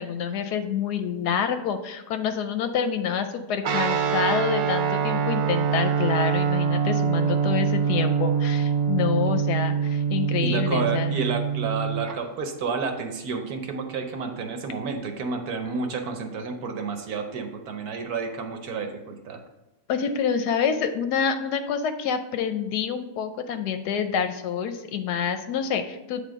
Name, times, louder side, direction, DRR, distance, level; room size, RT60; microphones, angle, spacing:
voice 1, 0.0-11.2 19.9-26.2, left 7 dB, 75° left, 9 dB, 1.1 m, -27 dB
Guitar, 3.6-12.2, right 7 dB, 85° right, 1.5 m, -24 dB
voice 2, 10.4-19.4, right 4 dB, 65° right, 5 dB, 1.2 m, -30 dB
8.3 x 3.5 x 5.0 m, 0.98 s
omnidirectional pair, 1.9 m